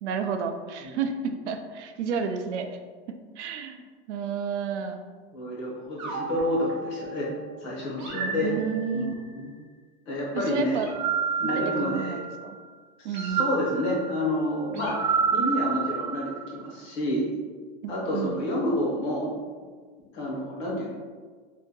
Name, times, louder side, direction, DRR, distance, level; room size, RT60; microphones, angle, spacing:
voice 1, 0.0-2.8 3.4-3.8 4.1-5.0 8.1-9.1 10.3-10.9 11.4-12.6 13.0-13.5 17.8-18.4, right 6 dB, 80° right, 6 dB, 0.5 m, -31 dB
voice 2, 5.3-7.3 7.6-8.5 8.9-9.5 10.1-10.8 11.4-12.2 13.0-17.2 17.9-19.3 20.1-20.9, left 1 dB, 25° left, -4 dB, 0.6 m, -29 dB
sound 1, 6.0-7.4 8.0-9.3 10.7-12.5 13.1-16.7, right 6 dB, 45° right, 0.7 m, -30 dB
2.8 x 2.6 x 3.7 m, 1.5 s
supercardioid pair, 180°, 34 cm